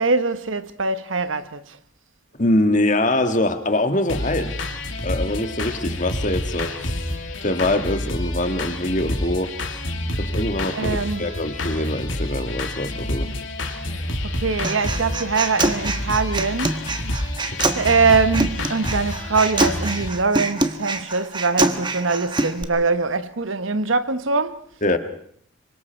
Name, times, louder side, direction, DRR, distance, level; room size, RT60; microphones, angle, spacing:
voice 1, 0.0-1.8 10.7-11.3 14.2-16.9 17.4-24.6, right 4 dB, 90° right, 1.2 m, -23 dB
voice 2, 2.4-4.6 5.0-9.5 10.2-13.3 13.8-14.0 24.8-25.0, left 1 dB, 40° left, 1.8 m, -23 dB
sound 1, 4.1-20.1, left 1 dB, 85° left, 2.8 m, -28 dB
Human voice, 14.6-22.6, right 2 dB, 25° right, 1.3 m, -25 dB
26.5 x 24.0 x 4.5 m
head